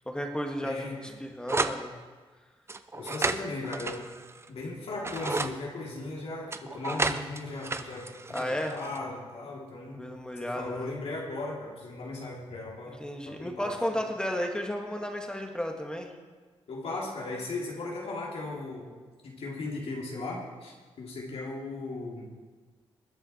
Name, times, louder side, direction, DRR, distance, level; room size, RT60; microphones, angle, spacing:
voice 1, 0.1-1.9 8.3-8.8 9.9-10.9 12.9-16.1, equal, 10° left, 2 dB, 1.9 m, -33 dB
voice 2, 0.6-1.1 2.9-4.1 4.5-8.1 8.4-10.1 10.4-14.0 16.7-18.9 19.2-22.3, left 2 dB, 75° left, -2 dB, 3.2 m, -37 dB
sound 1, 1.5-1.8 2.7-4.5 4.9-5.5 6.5-9.0, right 3 dB, 25° right, 0.7 m, -32 dB
20.5 x 8.8 x 4.5 m, 1.4 s
cardioid pair, 85°, 10 cm